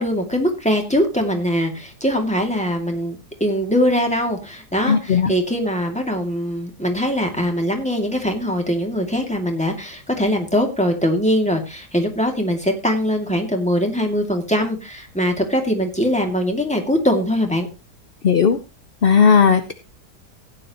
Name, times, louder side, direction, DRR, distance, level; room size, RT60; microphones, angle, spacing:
voice 1, 0.0-17.7, equal, 5° left, 3 dB, 2.4 m, -22 dB
voice 2, 4.9-5.3 18.2-18.6 19.0-19.7, left 6 dB, 50° left, 9 dB, 0.7 m, -15 dB
16.0 x 10.0 x 3.0 m, 0.26 s
omnidirectional pair, 1.8 m